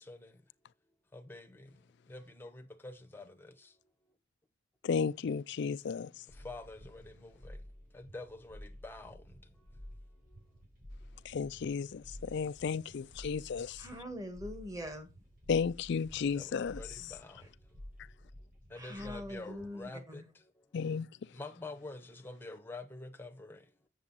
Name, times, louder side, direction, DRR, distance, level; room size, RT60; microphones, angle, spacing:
voice 1, 1.1-1.7 2.1-3.5 6.4-7.6 7.9-9.2 16.3-17.4 18.7-20.2 21.3-23.6, left 2 dB, 10° left, 0.9 m, -47 dB
voice 2, 4.8-6.2 11.2-13.9 15.5-16.8 20.7-21.1, left 6 dB, 55° left, 0.4 m, -33 dB
sound 1, 6.3-19.9, equal, 45° right, 4.5 m, -52 dB
voice 3, 13.8-15.1 18.7-20.3, equal, 15° right, 1.5 m, -43 dB
7.7 x 7.3 x 4.0 m
head